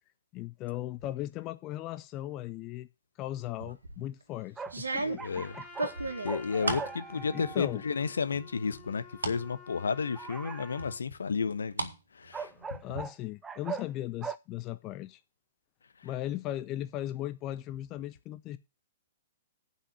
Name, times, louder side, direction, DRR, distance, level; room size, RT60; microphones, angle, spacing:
voice 1, 0.3-2.9 3.2-5.2 5.5-5.9 7.1-7.8 12.4-15.2 16.0-18.6, left 14 dB, 30° left, 0.6 m, -38 dB
sound 1, 3.6-4.0 4.7-6.9 7.4-7.9 8.3-9.4 9.8-9.9 10.8-11.9 12.3-13.0, right 2 dB, 80° right, 1.9 m, -35 dB
sound 2, 4.6-6.0 6.3-7.7 10.2-10.8 12.3-13.1 13.4-13.9 14.2-14.4, right 5 dB, 15° right, 0.6 m, -39 dB
voice 2, 5.0-5.6 6.2-12.5 16.0-16.1, left 5 dB, 75° left, 1.1 m, -32 dB
Trumpet, 5.2-11.0, left 4 dB, 10° left, 2.6 m, -51 dB
9.7 x 5.7 x 8.4 m
figure-of-eight pair, 110°, 0 cm